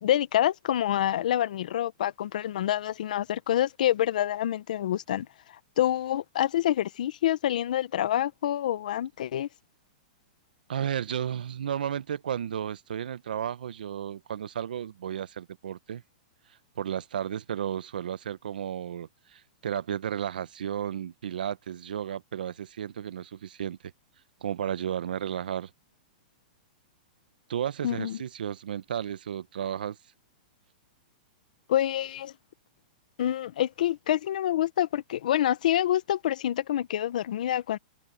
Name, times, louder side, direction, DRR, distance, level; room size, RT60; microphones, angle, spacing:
voice 1, 0.0-5.3 5.8-9.5 27.8-28.2 31.7-32.3 33.2-37.8, left 12 dB, 65° left, 1.0 m, -27 dB
voice 2, 10.7-16.0 16.8-23.9 24.4-25.7 27.5-30.0, right 9 dB, 85° right, 0.9 m, -33 dB
hypercardioid pair, 165°, 5 cm